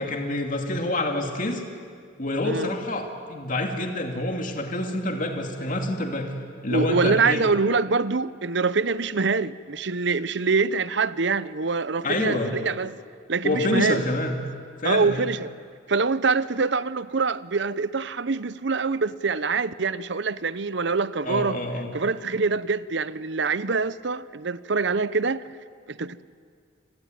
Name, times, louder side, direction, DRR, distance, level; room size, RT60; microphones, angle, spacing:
voice 1, 0.0-1.6 2.2-6.3 6.6-7.4 12.0-12.5 13.4-14.4 14.8-15.2 21.2-21.9, left 1 dB, 45° left, 2.6 m, -27 dB
voice 2, 6.7-13.0 13.3-14.0 14.8-15.5 15.9-21.6 21.9-25.4 25.9-26.2, right 4 dB, 65° right, 0.8 m, -25 dB
29.0 x 22.5 x 9.2 m
head